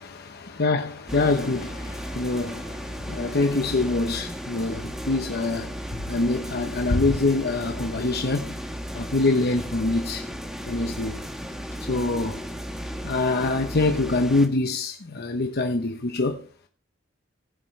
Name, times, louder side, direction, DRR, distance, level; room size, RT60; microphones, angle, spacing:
voice 1, 0.2-8.6 8.9-10.2 10.6-11.2 11.8-12.4 13.0-16.5, left 2 dB, 55° left, 1.0 m, -25 dB
sound 1, 1.1-14.5, equal, ahead, 1.5 m, -35 dB
17.5 x 7.5 x 3.3 m
head